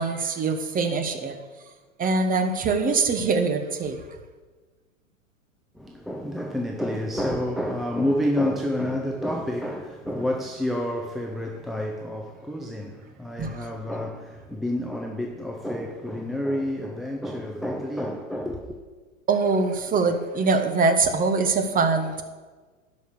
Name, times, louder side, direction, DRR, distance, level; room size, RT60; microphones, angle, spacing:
voice 1, 0.0-1.4 2.0-4.0 13.4-13.5 19.3-22.2, right 4 dB, 20° right, 8 dB, 1.0 m, -23 dB
voice 2, 5.7-18.8, left 1 dB, ahead, 1 dB, 0.5 m, -29 dB
11.0 x 5.4 x 6.7 m, 1.4 s
hypercardioid pair, 105°, 40 cm